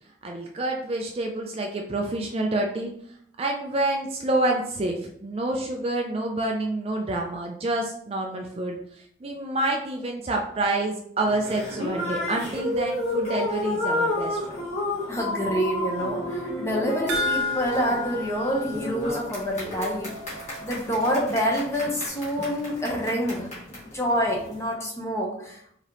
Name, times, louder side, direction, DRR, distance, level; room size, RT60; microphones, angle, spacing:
voice 1, 0.2-2.9 3.4-14.6, right 2 dB, 30° right, 1 dB, 0.4 m, -28 dB
sound 1, 11.2-24.7, left 1 dB, 35° left, 1.6 m, -31 dB
voice 2, 15.1-20.1 20.6-23.5 23.7-25.7, equal, 15° left, -2 dB, 0.8 m, -27 dB
sound 2, 17.1-19.6 19.9-20.0 20.4-20.5, left 2 dB, 85° right, 0.7 m, -31 dB
4.8 x 2.9 x 2.9 m, 0.69 s
head